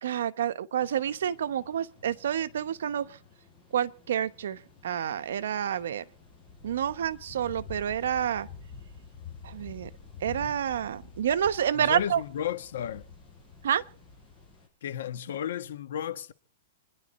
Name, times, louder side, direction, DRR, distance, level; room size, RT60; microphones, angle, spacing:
voice 1, 0.0-3.1 3.7-6.0 6.6-8.5 9.4-9.9 10.2-12.2 13.6-13.8, right 9 dB, 80° right, 1.0 m, -29 dB
sound 1, 0.8-14.7, left 5 dB, 5° left, 6.0 m, -49 dB
voice 2, 11.7-13.0 14.8-16.3, left 10 dB, 70° left, 1.3 m, -33 dB
28.5 x 10.5 x 4.2 m
supercardioid pair, 160°, 0 cm